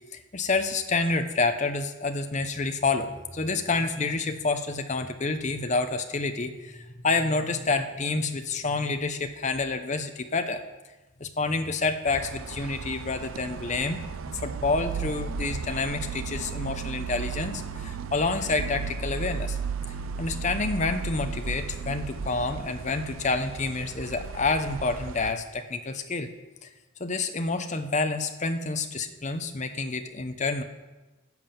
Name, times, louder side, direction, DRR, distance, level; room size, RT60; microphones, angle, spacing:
voice 1, 0.1-10.6 11.2-14.0 14.4-19.6 20.2-26.3 26.6-26.7 27.0-30.6, left 3 dB, 35° left, 8 dB, 0.7 m, -28 dB
sound 1, 12.1-25.3, right 5 dB, 80° right, 0.5 m, -35 dB
11.0 x 7.5 x 6.9 m, 1.2 s
head